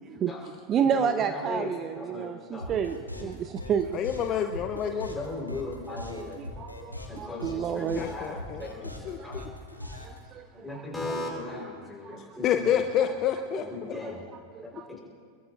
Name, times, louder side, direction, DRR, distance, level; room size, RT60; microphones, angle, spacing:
voice 1, 0.2-4.0 5.9-6.0 6.4-8.4 9.2-9.5 9.8-11.1 12.0-12.4 13.5-13.7 13.9-14.9, right 8 dB, 30° right, 9 dB, 0.6 m, -31 dB
voice 2, 2.0-2.6 4.3-4.4 5.1-6.4 7.1-8.9 9.2-9.3 10.6-12.7 13.0-13.1 13.6-14.2 14.6-15.0, left 2 dB, 5° left, -4 dB, 4.3 m, -37 dB
sound 1, 2.6-10.2, left 1 dB, 85° left, 2.0 m, -40 dB
voice 3, 3.9-5.2 7.9-9.4 12.4-14.2, left 9 dB, 35° left, 7 dB, 0.7 m, -29 dB
23.5 x 22.0 x 2.6 m, 2.1 s
figure-of-eight pair, 90°, 0 cm